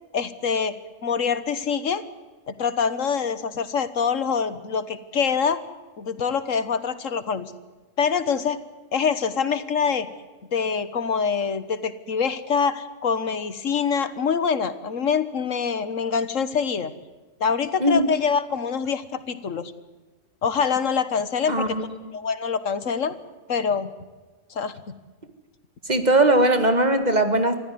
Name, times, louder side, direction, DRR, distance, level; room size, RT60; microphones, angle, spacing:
voice 1, 0.1-2.0 2.5-5.6 6.0-7.5 8.0-8.6 8.9-10.1 10.5-16.9 17.4-19.7 20.4-21.8 22.1-23.1 23.5-23.9 24.5-24.7, left 6 dB, 80° left, 14 dB, 1.7 m, -25 dB
voice 2, 21.5-21.8 25.9-27.5, right 1 dB, 35° right, 10 dB, 2.1 m, -19 dB
24.0 x 15.0 x 9.5 m, 1.3 s
omnidirectional pair, 1.3 m